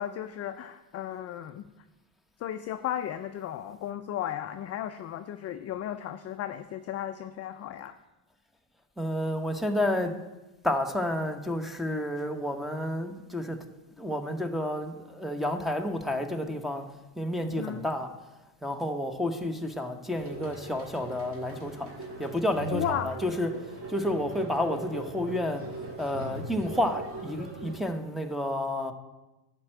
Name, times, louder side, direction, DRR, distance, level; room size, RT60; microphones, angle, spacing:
voice 1, 0.0-1.7 2.4-8.0 17.6-17.9 22.7-23.2, left 11 dB, 35° left, 9 dB, 0.4 m, -35 dB
voice 2, 9.0-10.2 10.6-13.6 14.0-16.8 17.2-18.1 18.6-23.5 23.9-25.6 26.0-28.9, left 1 dB, ahead, 2 dB, 0.8 m, -30 dB
sound 1, 20.2-27.8, right 2 dB, 30° right, 1.9 m, -40 dB
11.0 x 4.5 x 7.6 m, 1.1 s
supercardioid pair, 110°, 48 cm